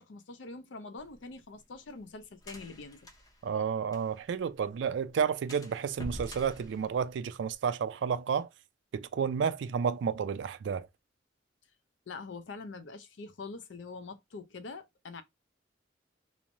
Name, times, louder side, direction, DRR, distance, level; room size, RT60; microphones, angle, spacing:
voice 1, 0.0-3.0 12.1-15.2, left 3 dB, 80° left, 0.5 m, -44 dB
sound 1, 1.0-4.4 4.7-4.8 5.1-5.2 5.5-7.5, equal, 20° left, 0.5 m, -46 dB
voice 2, 3.4-8.5 8.9-10.9, right 6 dB, 70° right, 0.3 m, -31 dB
3.0 x 2.0 x 2.5 m
head